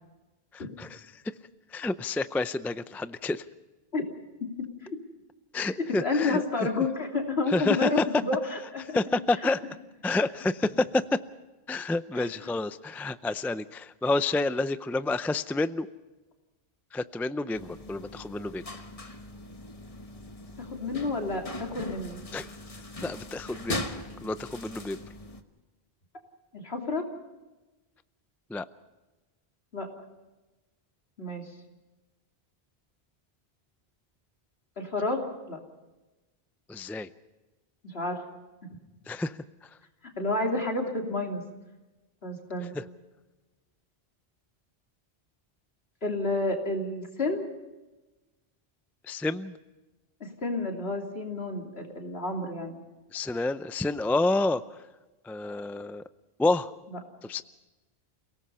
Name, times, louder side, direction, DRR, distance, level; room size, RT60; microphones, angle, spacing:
voice 1, 0.5-1.1 1.7-3.4 5.5-6.4 7.5-8.0 8.9-9.6 10.0-11.0 11.7-15.9 16.9-18.6 22.3-22.5 23.0-23.9 24.2-25.0 28.5-28.6 36.7-37.1 39.1-39.4 42.8-42.9 49.1-49.6 53.1-54.6 55.2-56.0 56.4-56.7 57.2-57.4, left 2 dB, 5° left, 13 dB, 0.3 m, -29 dB
voice 2, 5.8-9.0 12.2-12.3 17.6-17.7 20.6-22.2 26.5-27.0 29.7-29.9 31.2-31.5 34.8-35.6 37.8-38.2 40.2-41.4 42.2-42.7 46.0-47.5 50.2-52.8 56.9-57.0, left 2 dB, 75° left, 2 dB, 3.3 m, -30 dB
sound 1, 17.5-25.4, left 2 dB, 35° left, 1.3 m, -40 dB
29.0 x 18.0 x 5.5 m, 1.1 s
omnidirectional pair, 1.1 m